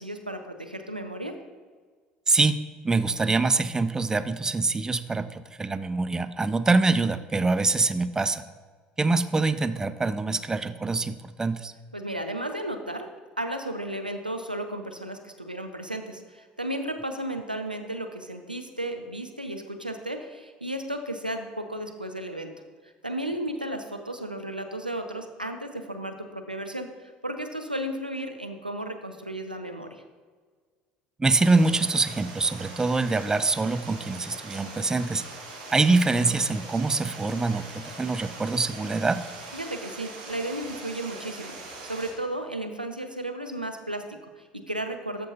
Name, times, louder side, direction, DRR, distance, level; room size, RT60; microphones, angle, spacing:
voice 1, 0.0-1.3 11.9-13.1 13.4-22.5 23.0-30.0 39.5-41.5 41.8-45.3, right 1 dB, 90° right, 6 dB, 0.5 m, -34 dB
voice 2, 2.3-2.6 2.8-8.4 9.0-11.7 31.2-35.2 35.7-39.3, right 3 dB, 15° right, 13 dB, 0.4 m, -24 dB
Stream, 31.4-42.1, right 3 dB, 70° right, 1.7 m, -42 dB
13.5 x 5.3 x 2.8 m, 1.5 s
figure-of-eight pair, 60°, 5 cm